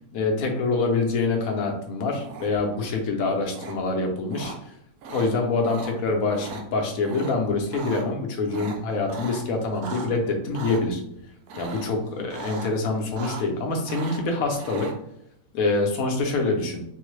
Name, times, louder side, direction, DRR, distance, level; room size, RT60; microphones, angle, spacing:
voice 1, 0.1-4.5 5.1-11.0 11.6-14.9 15.5-16.8, left 3 dB, 70° left, 2 dB, 1.1 m, -25 dB
sound 1, 2.2-2.7 3.5-3.7 4.3-4.6 5.0-5.3 5.6-5.9 6.3-6.6 7.0-7.3 7.6-8.0 8.5-10.1 10.5-10.8 11.5-12.0 12.3-12.7 13.0-13.6 13.8-14.9, right 4 dB, 85° right, 1.2 m, -38 dB
3.6 x 2.1 x 3.1 m, 0.76 s
omnidirectional pair, 1.6 m